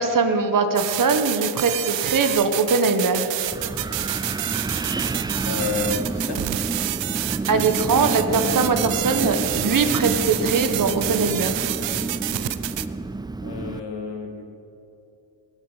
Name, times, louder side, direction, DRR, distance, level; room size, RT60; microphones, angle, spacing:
voice 1, 0.0-3.4 7.5-11.6, right 4 dB, 45° right, 7 dB, 1.4 m, -21 dB
sound 1, 0.8-12.9, right 14 dB, 75° right, 0.7 m, -28 dB
Wind, 3.5-13.8, right 3 dB, 10° right, 0.3 m, -29 dB
voice 2, 5.5-6.4 13.4-14.4, left 5 dB, 65° left, 4 dB, 2.3 m, -30 dB
19.0 x 9.0 x 8.2 m, 2.8 s
cardioid pair, 105°, 44 cm